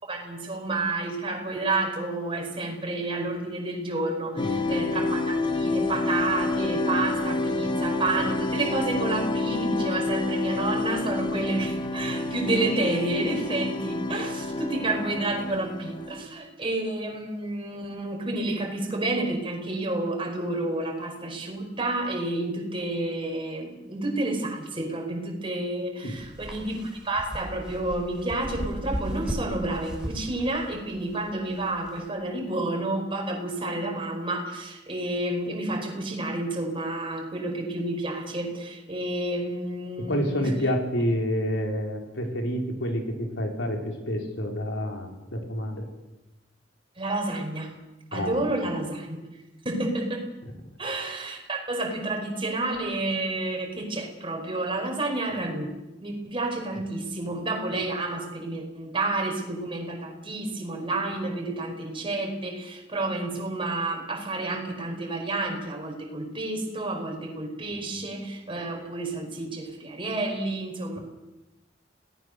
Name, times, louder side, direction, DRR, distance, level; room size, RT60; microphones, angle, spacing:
voice 1, 0.0-40.5 47.0-47.7 48.1-49.2 49.6-50.2 50.8-71.0, right 2 dB, 30° right, 1 dB, 4.9 m, -30 dB
sound 1, 4.4-16.2, left 2 dB, 25° left, 1.2 m, -28 dB
sound 2, 26.1-32.1, equal, 5° right, 4.7 m, -36 dB
voice 2, 40.0-45.9 48.1-48.5 50.4-50.5, equal, 75° left, 2 dB, 4.5 m, -28 dB
27.5 x 18.5 x 6.7 m, 1.0 s
head